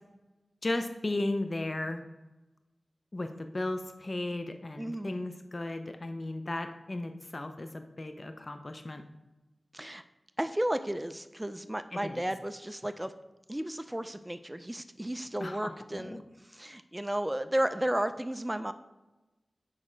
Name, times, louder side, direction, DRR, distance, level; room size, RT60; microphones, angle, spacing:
voice 1, 0.6-2.0 3.1-9.0 11.9-12.2 15.4-16.2, left 2 dB, 45° left, 7 dB, 0.5 m, -35 dB
voice 2, 4.8-5.1 9.7-10.0 10.4-13.1 13.5-16.2 16.5-18.7, right 1 dB, 15° right, 9 dB, 0.4 m, -33 dB
6.3 x 4.3 x 5.1 m, 1.1 s
wide cardioid pair, 55°, 0 cm